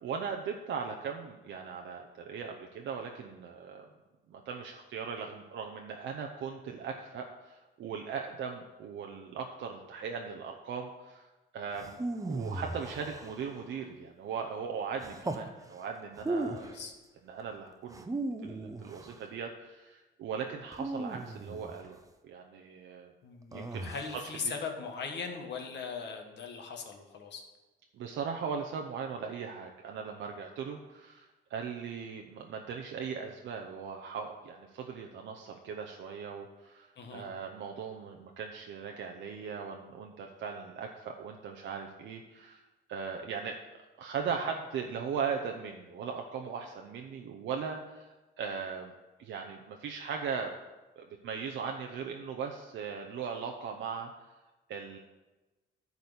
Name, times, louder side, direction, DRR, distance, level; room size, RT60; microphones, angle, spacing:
voice 1, 0.0-3.9 4.3-11.3 11.5-12.0 12.3-16.6 17.3-18.1 18.4-23.1 23.5-23.9 27.9-42.6 42.9-43.6 44.0-48.9 49.2-50.5 51.0-54.3 54.7-55.0, right 6 dB, 70° right, 2 dB, 0.8 m, -39 dB
sound 1, 11.8-13.8 15.0-15.5 16.1-16.8 17.9-19.2 20.7-21.9 23.5-24.3, right 2 dB, 15° right, 0.8 m, -37 dB
voice 2, 16.6-16.9 23.2-27.4 36.9-37.3, left 5 dB, 60° left, 3 dB, 1.4 m, -39 dB
10.5 x 4.1 x 6.8 m, 1.1 s
cardioid pair, 90°, 20 cm